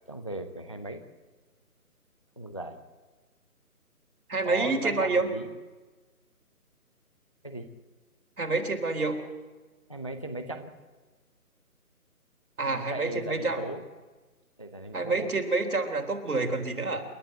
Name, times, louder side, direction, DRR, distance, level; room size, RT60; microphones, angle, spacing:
voice 1, 0.1-1.0 2.4-2.8 4.4-5.5 7.4-7.7 9.9-10.7 12.6-13.8 14.6-15.3, right 2 dB, 20° left, 8 dB, 0.7 m, -37 dB
voice 2, 4.3-5.3 8.4-9.2 12.6-13.6 14.9-17.0, right 3 dB, 70° right, 3 dB, 4.0 m, -28 dB
28.5 x 11.5 x 7.9 m, 1.3 s
figure-of-eight pair, 165°, 45 cm